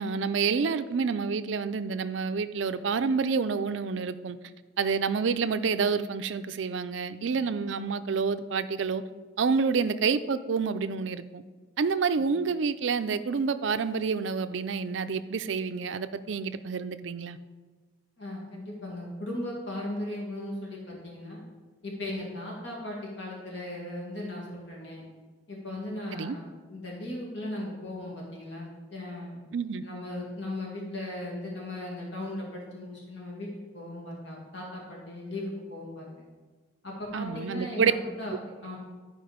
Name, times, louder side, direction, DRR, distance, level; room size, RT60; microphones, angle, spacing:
voice 1, 0.0-4.4 4.8-9.0 9.4-11.4 11.8-17.4 26.1-26.4 29.5-29.8 37.1-37.9, right 5 dB, 75° right, 0.4 m, -28 dB
voice 2, 18.2-21.4 21.8-25.0 25.5-29.4 29.8-33.5 33.7-36.3 36.8-38.3 38.6-38.8, left 1 dB, 70° left, 2.1 m, -37 dB
11.0 x 5.1 x 5.0 m
head